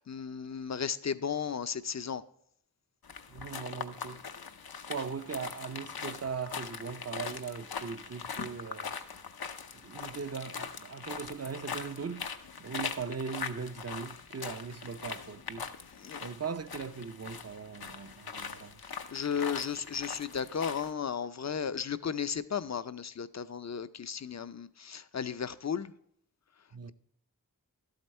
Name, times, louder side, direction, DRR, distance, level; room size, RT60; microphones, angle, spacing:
voice 1, 0.0-2.2 16.0-16.2 18.4-18.7 19.1-25.9, left 7 dB, 50° left, 0.5 m, -35 dB
sound 1, 3.0-20.9, left 6 dB, 85° left, 0.7 m, -41 dB
voice 2, 3.3-4.2 4.9-9.0 9.7-12.3 12.6-15.7 16.2-18.8 26.7-26.9, right 5 dB, 45° right, 0.6 m, -39 dB
12.0 x 8.0 x 4.2 m
wide cardioid pair, 55°, 36 cm